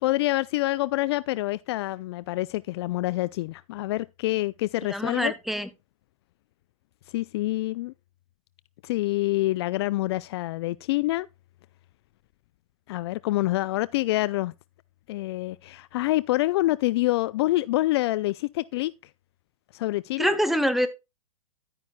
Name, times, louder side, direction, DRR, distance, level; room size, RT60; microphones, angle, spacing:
voice 1, 0.0-5.3 7.1-7.9 8.8-11.3 12.9-14.5 15.1-18.9 19.7-20.4, left 18 dB, 50° left, 0.4 m, -26 dB
voice 2, 4.9-5.7 20.2-20.9, equal, ahead, 1.2 m, -25 dB
11.5 x 9.4 x 2.2 m
hypercardioid pair, 120°, 17 cm